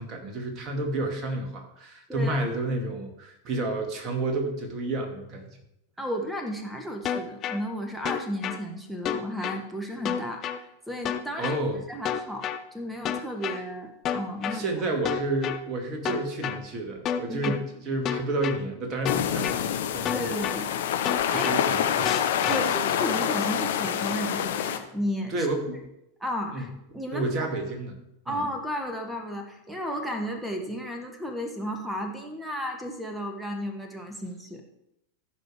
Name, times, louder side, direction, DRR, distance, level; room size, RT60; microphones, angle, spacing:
voice 1, 0.0-5.5 11.4-11.8 14.5-20.4 21.3-22.1 22.4-22.5 25.3-25.8 26.5-26.7 27.1-28.0 28.3-28.4, right 2 dB, 30° right, 3 dB, 2.2 m, -30 dB
voice 2, 2.1-2.4 6.0-10.5 10.9-11.5 11.9-12.5 12.7-14.6 17.3-17.5 20.1-20.9 21.3-21.5 22.5-25.3 26.2-27.3 28.2-34.6, equal, 5° right, 4 dB, 1.6 m, -33 dB
sound 1, 7.1-7.6 8.1-8.6 9.1-9.6 10.1-10.6 11.1-11.6 12.1-12.6 13.1-13.6 14.1-14.6 15.1-15.6 16.1-16.6 17.1-17.6 18.1-18.6 19.1-19.6 20.1-20.6 21.1-21.6 22.1-22.6, left 9 dB, 30° left, 0.7 m, -29 dB
sound 2, 19.1-24.8, left 9 dB, 60° left, 0.9 m, -27 dB
15.0 x 5.2 x 4.9 m, 0.84 s
figure-of-eight pair, 90°, 0 cm